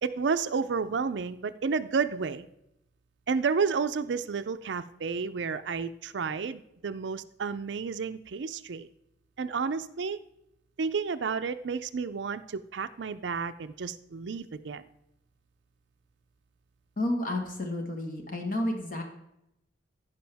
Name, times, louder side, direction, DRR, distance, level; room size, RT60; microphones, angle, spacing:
voice 1, 0.0-2.5 3.3-8.9 9.4-10.2 10.8-14.8, right 5 dB, 70° right, 11 dB, 0.5 m, -31 dB
voice 2, 17.0-19.0, left 1 dB, 50° left, 3 dB, 1.5 m, -31 dB
15.5 x 5.4 x 3.4 m, 0.82 s
head